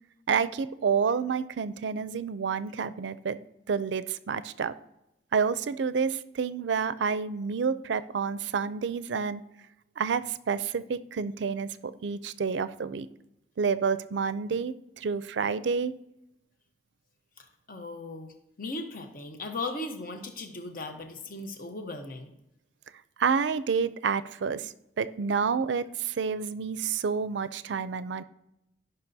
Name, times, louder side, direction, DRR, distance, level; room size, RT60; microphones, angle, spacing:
voice 1, 0.3-3.4 3.7-4.7 5.3-9.4 10.0-13.1 13.6-15.9 23.2-28.2, right 6 dB, 85° right, 14 dB, 0.4 m, -29 dB
voice 2, 17.4-22.3, left 2 dB, 50° left, 5 dB, 0.9 m, -38 dB
15.0 x 5.5 x 2.7 m, 0.85 s
head